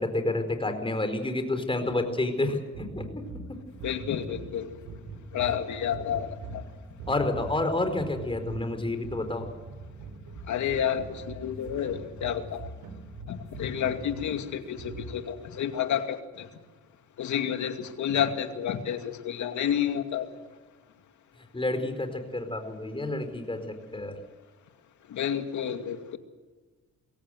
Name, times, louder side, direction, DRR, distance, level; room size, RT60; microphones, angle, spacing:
voice 1, 0.0-3.2 7.1-9.4 21.5-24.2, left 2 dB, 15° left, 7 dB, 4.6 m, -29 dB
sound 1, 2.7-15.4, right 3 dB, 85° right, 4.3 m, -42 dB
voice 2, 3.8-4.7 5.3-6.3 10.5-12.7 13.3-16.5 17.2-20.3 25.1-26.2, left 9 dB, 75° left, 6 dB, 2.5 m, -30 dB
23.0 x 17.0 x 8.0 m, 1.3 s
cardioid pair, 90°, 30 cm